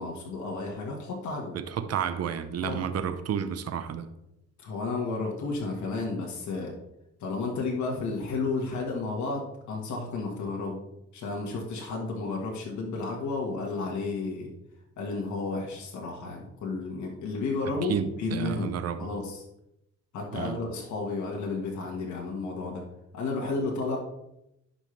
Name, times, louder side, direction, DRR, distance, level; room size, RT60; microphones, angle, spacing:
voice 1, 0.0-1.6 2.6-2.8 4.6-6.7 7.2-10.8 11.1-14.5 15.0-18.7 19.0-19.4 20.1-22.8 23.1-24.0, left 3 dB, 70° left, -1 dB, 1.7 m, -32 dB
voice 2, 1.5-4.1 17.9-19.1 20.3-20.6, right 8 dB, 55° right, 10 dB, 0.8 m, -31 dB
10.5 x 5.6 x 3.3 m, 0.86 s
cardioid pair, 100°, 30 cm